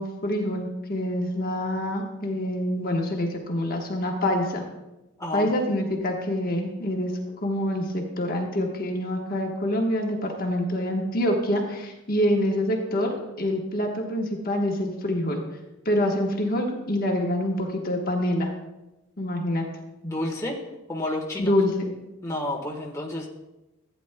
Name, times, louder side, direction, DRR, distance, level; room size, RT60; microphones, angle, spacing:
voice 1, 0.0-4.6 5.3-15.4 15.8-18.5 19.2-19.7 21.4-21.9, left 1 dB, 40° left, 1 dB, 1.2 m, -26 dB
voice 2, 20.0-20.6 20.9-21.5 22.2-23.3, left 1 dB, 15° left, -1 dB, 1.2 m, -30 dB
15.5 x 9.3 x 2.2 m, 0.99 s
head